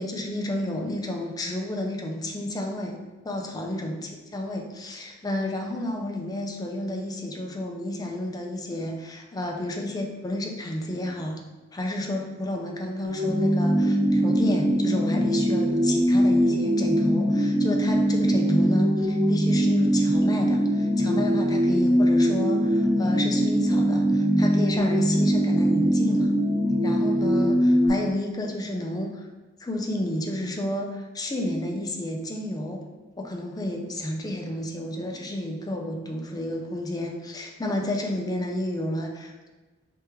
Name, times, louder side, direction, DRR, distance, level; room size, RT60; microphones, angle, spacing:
voice 1, 0.0-3.0 3.2-11.4 11.7-26.3 26.8-29.3 29.6-32.8 33.2-39.5, left 1 dB, 20° left, 1 dB, 0.5 m, -31 dB
sound 1, 13.1-27.9, equal, 35° right, 1.1 m, -22 dB
4.8 x 3.4 x 3.0 m, 1.2 s
head